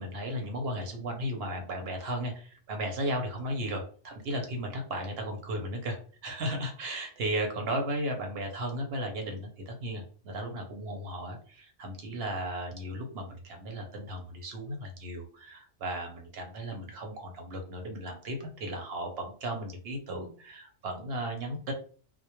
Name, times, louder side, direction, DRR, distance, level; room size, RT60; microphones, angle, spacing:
voice 1, 0.0-6.0 6.2-21.7, right 1 dB, 65° right, 3 dB, 0.8 m, -35 dB
2.2 x 2.0 x 2.8 m, 0.43 s
omnidirectional pair, 1.2 m